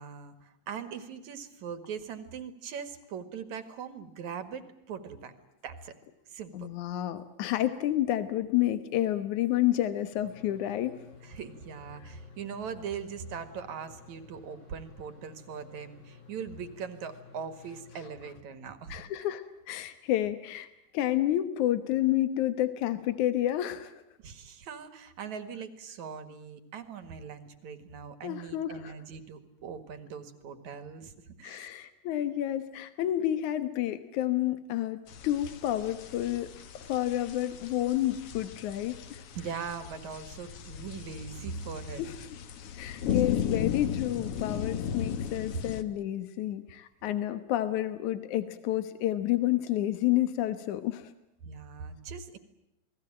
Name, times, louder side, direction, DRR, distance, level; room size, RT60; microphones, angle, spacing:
voice 1, 0.0-5.3 5.6-5.9 6.3-6.7 11.2-19.0 24.2-31.1 31.4-31.8 39.3-42.0 51.4-52.4, right 6 dB, 70° right, 11 dB, 3.2 m, -41 dB
voice 2, 6.5-11.0 18.9-24.0 28.2-28.9 31.4-36.5 36.8-39.2 42.0-42.1 42.8-51.1, left 13 dB, 80° left, 12 dB, 2.6 m, -30 dB
sound 1, 10.1-18.3, left 6 dB, 40° left, 7.6 m, -53 dB
sound 2, 35.1-45.8, left 9 dB, 55° left, 2.1 m, -36 dB
29.0 x 20.5 x 8.9 m, 0.85 s
omnidirectional pair, 3.4 m